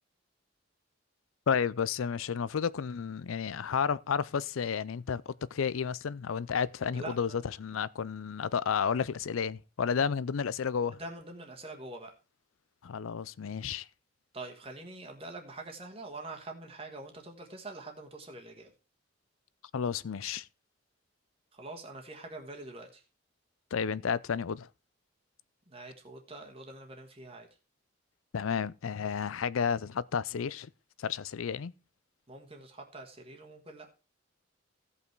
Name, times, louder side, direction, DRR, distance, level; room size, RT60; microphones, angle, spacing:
voice 1, 1.5-11.0 12.8-13.9 19.7-20.5 23.7-24.7 28.3-30.7 31.0-31.7, left 6 dB, 80° left, 0.5 m, -31 dB
voice 2, 6.9-7.4 10.0-10.1 10.9-12.1 14.3-18.7 21.5-23.0 25.7-27.5 32.3-33.9, right 2 dB, 30° right, 1.4 m, -45 dB
15.5 x 5.6 x 4.6 m
head